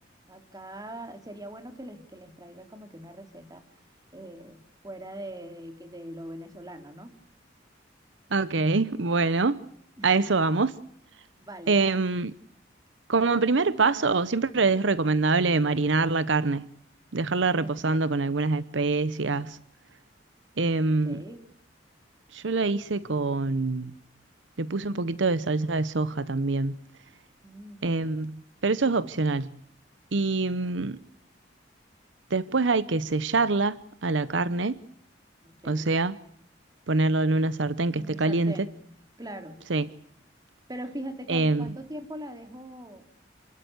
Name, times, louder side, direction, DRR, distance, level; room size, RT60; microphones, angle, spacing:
voice 1, 0.3-3.6 4.1-4.6 4.8-7.1 11.4-11.7 17.6-18.0 20.8-21.4 27.4-28.2 35.4-35.9 37.9-38.7 39.2-39.6 40.7-43.2, right 1 dB, 20° right, 3.1 m, -41 dB
voice 2, 8.3-9.6 10.0-10.7 11.7-12.3 13.1-16.6 17.1-19.6 20.6-21.2 22.3-23.9 24.6-26.8 27.8-29.5 30.1-31.0 32.3-34.8 35.6-36.2 36.9-38.5 39.7-39.9 41.3-41.7, right 3 dB, 80° right, 0.9 m, -25 dB
28.5 x 12.5 x 9.5 m
head